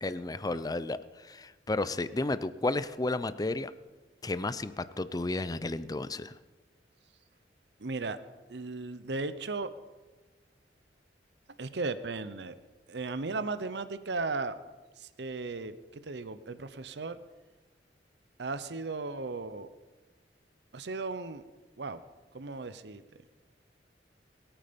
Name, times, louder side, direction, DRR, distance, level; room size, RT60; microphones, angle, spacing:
voice 1, 0.0-3.7 4.2-6.3, left 2 dB, 20° left, 14 dB, 0.5 m, -32 dB
voice 2, 7.8-8.2 8.5-9.7 11.6-12.5 12.9-14.6 15.0-17.2 18.4-19.7 20.7-21.4 21.8-22.0 22.3-23.0, right 3 dB, 70° right, 13 dB, 0.8 m, -36 dB
21.5 x 9.0 x 5.3 m, 1.2 s
head